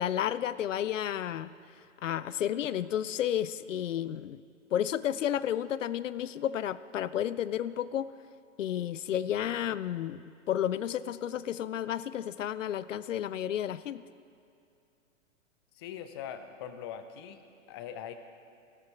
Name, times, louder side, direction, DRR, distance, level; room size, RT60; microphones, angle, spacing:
voice 1, 0.0-1.5 2.0-4.4 4.7-8.1 8.6-14.0, left 10 dB, 75° left, 16 dB, 0.5 m, -32 dB
voice 2, 15.7-18.1, left 9 dB, 20° left, 9 dB, 0.4 m, -42 dB
17.5 x 6.7 x 4.6 m, 2.5 s
hypercardioid pair, 120°, 38 cm